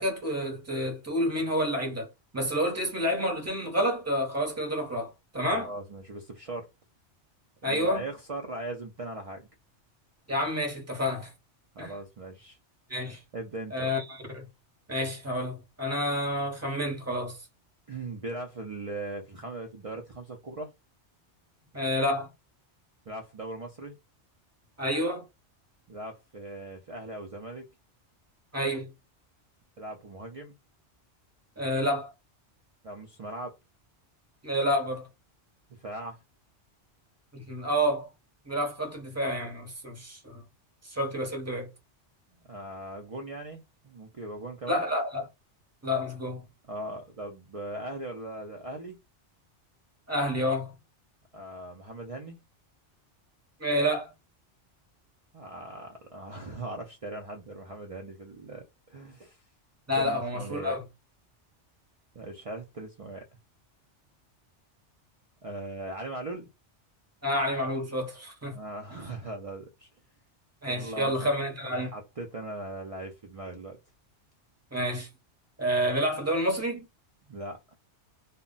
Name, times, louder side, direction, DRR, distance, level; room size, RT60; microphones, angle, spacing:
voice 1, 0.0-2.1 2.3-5.7 7.6-8.1 10.3-11.3 11.8-11.9 12.9-13.2 13.7-14.5 14.9-17.4 21.7-22.3 24.8-25.2 28.5-28.9 31.6-32.1 34.4-35.1 37.3-38.1 38.4-40.4 40.8-41.7 44.7-45.3 45.8-46.4 50.1-50.7 53.6-54.1 59.9-60.8 67.2-68.6 68.9-69.0 70.6-71.9 74.7-75.1 75.6-76.8, equal, 15° right, 0.7 m, -29 dB
voice 2, 5.5-6.7 7.6-9.5 11.7-12.6 13.3-13.9 17.9-20.7 23.1-24.0 25.9-27.7 29.8-30.6 32.8-33.6 35.8-36.2 42.5-44.8 46.7-49.0 51.3-52.4 55.3-59.4 59.9-60.8 62.1-63.2 65.4-66.5 68.5-69.9 70.7-71.3 71.9-73.8 77.3-77.8, right 2 dB, 65° right, 0.3 m, -39 dB
2.1 x 2.0 x 3.7 m
omnidirectional pair, 1.2 m